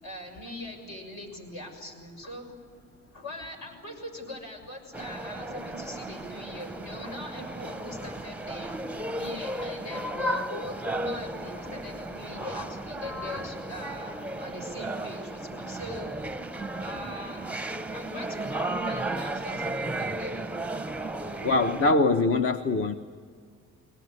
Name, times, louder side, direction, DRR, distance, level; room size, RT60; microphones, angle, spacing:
voice 1, 0.0-2.5 3.1-8.7 9.2-16.1 16.8-17.5 17.9-20.4, left 1 dB, 70° left, 2 dB, 6.6 m, -41 dB
sound 1, 4.9-21.9, right 1 dB, 5° right, 0.7 m, -34 dB
voice 2, 21.4-22.9, left 3 dB, 45° left, 7 dB, 1.0 m, -23 dB
23.0 x 18.5 x 9.8 m, 2.1 s
cardioid pair, 90°, 30 cm